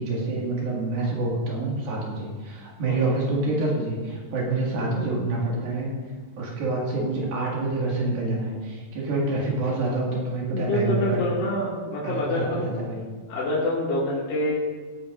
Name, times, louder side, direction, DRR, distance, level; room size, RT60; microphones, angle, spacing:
voice 1, 0.0-5.9 6.4-11.3 12.0-13.0, right 2 dB, 85° right, -3 dB, 3.9 m, -27 dB
voice 2, 2.8-3.2 10.5-12.7 13.3-14.6, left 1 dB, 65° left, -7 dB, 3.1 m, -26 dB
18.0 x 9.2 x 2.6 m, 1.5 s
omnidirectional pair, 4.1 m